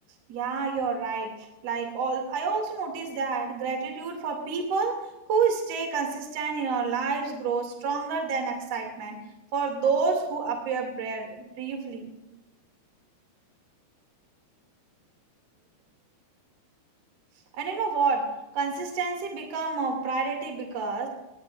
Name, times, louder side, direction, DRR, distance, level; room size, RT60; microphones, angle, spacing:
voice 1, 0.3-5.0 5.3-9.2 9.5-12.1 17.6-21.1, right 5 dB, 45° right, 2 dB, 3.0 m, -29 dB
18.5 x 17.5 x 2.5 m, 0.98 s
omnidirectional pair, 4.8 m